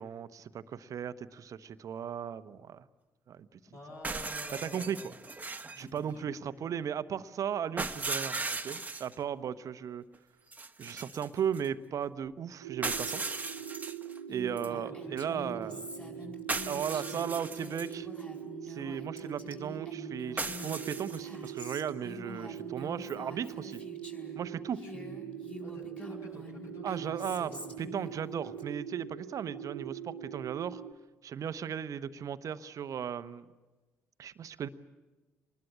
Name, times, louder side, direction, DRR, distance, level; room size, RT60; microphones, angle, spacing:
voice 1, 0.0-2.8 3.3-3.5 4.6-5.1 5.8-8.3 8.6-10.0 10.8-13.2 14.3-15.9 16.7-18.1 18.6-23.8 24.3-24.8 26.8-27.5 27.8-30.8 31.2-33.4 34.2-34.7, right 8 dB, 50° right, 14 dB, 1.0 m, -36 dB
voice 2, 3.7-5.1 5.7-6.5 14.7-14.8 15.0-15.3 15.7-16.3 24.8-27.7, left 1 dB, 50° left, -3 dB, 6.7 m, -49 dB
sound 1, 4.0-5.8 7.8-9.1 10.5-11.7 12.8-14.2 14.6-14.7 16.5-17.9 20.4-21.5, right 3 dB, 20° right, 1.3 m, -37 dB
sound 2, 12.6-30.9, right 10 dB, 85° right, 0.8 m, -43 dB
Female speech woman speaking, 14.3-24.4 24.7-28.6, left 1 dB, 15° left, 4.5 m, -47 dB
25.0 x 20.5 x 8.7 m, 1.2 s
hypercardioid pair, 45°, 7 cm